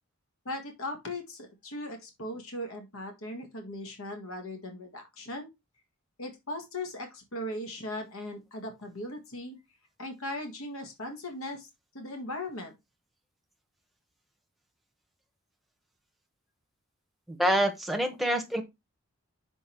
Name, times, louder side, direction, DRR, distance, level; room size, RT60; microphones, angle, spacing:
voice 1, 0.4-5.5 6.2-9.6 10.0-11.7 11.9-12.7, left 1 dB, 75° left, 1.7 m, -38 dB
voice 2, 17.3-18.6, equal, ahead, 1.0 m, -26 dB
6.3 x 4.6 x 4.5 m
head